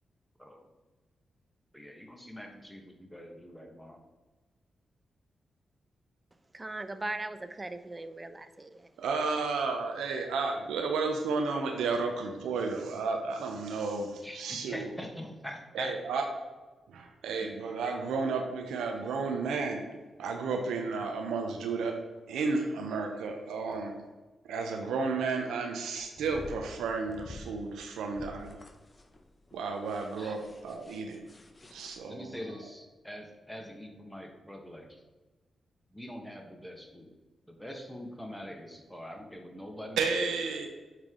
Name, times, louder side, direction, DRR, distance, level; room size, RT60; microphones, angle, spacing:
voice 1, 1.7-4.0 14.2-15.9 30.2-30.4 32.1-35.0 35.9-37.1 37.5-40.3, equal, 5° left, 1.3 m, -44 dB
voice 2, 6.5-8.9, right 2 dB, 25° right, 0.5 m, -39 dB
voice 3, 9.0-14.9 15.7-16.2 16.9-19.8 20.2-21.9 22.3-23.9 24.5-28.6 29.5-31.2 31.7-32.4 40.0-40.7, right 4 dB, 90° right, 0.6 m, -32 dB
sound 1, 26.0-32.0, left 1 dB, 35° left, 0.8 m, -49 dB
8.7 x 3.3 x 3.7 m
supercardioid pair, 55°, 0 cm